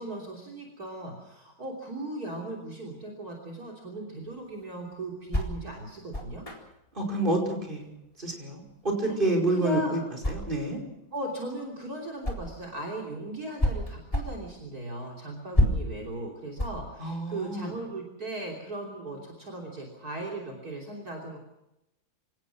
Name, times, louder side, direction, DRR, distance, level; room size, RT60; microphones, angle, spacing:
voice 1, 0.0-6.4 9.0-10.0 11.1-21.4, right 1 dB, 45° right, 2 dB, 3.8 m, -38 dB
sound 1, 4.2-12.8 13.1-17.9, left 1 dB, 15° left, 4.0 m, -32 dB
voice 2, 7.0-7.9 8.2-10.0 10.3-10.8 17.0-17.7, right 2 dB, 25° right, 0 dB, 5.5 m, -28 dB
27.5 x 17.5 x 6.1 m, 0.88 s
omnidirectional pair, 2.2 m